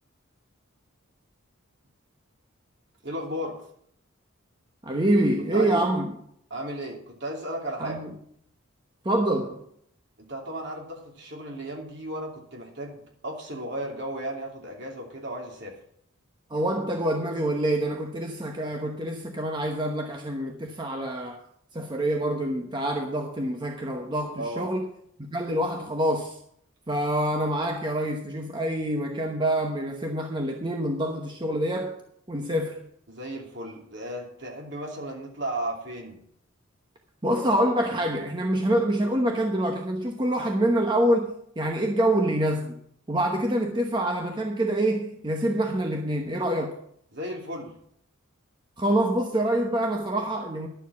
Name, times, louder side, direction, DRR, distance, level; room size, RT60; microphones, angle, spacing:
voice 1, 3.0-3.6 5.5-5.9 6.5-8.0 10.3-15.8 24.4-24.7 33.1-36.2 47.1-47.7, right 1 dB, 55° right, 2.9 m, -35 dB
voice 2, 4.8-6.1 7.8-8.1 9.0-9.6 16.5-21.4 21.7-24.8 25.3-26.4 26.9-32.0 32.3-32.8 37.2-42.7 43.1-46.7 48.8-50.7, right 1 dB, 20° right, 1.0 m, -26 dB
11.5 x 7.2 x 7.1 m
head